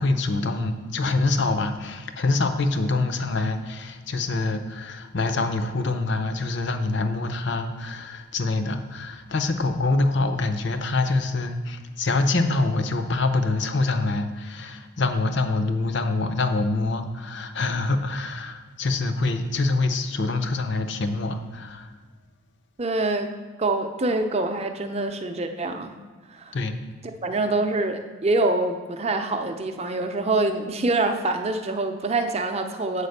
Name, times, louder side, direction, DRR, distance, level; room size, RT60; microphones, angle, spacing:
voice 1, 0.0-21.9 26.5-26.8, left 3 dB, 55° left, 8 dB, 0.6 m, -25 dB
voice 2, 22.8-23.3 23.6-25.9 26.3-26.5 27.2-33.1, right 2 dB, 30° right, 6 dB, 0.6 m, -25 dB
8.1 x 5.0 x 6.5 m, 1.4 s
head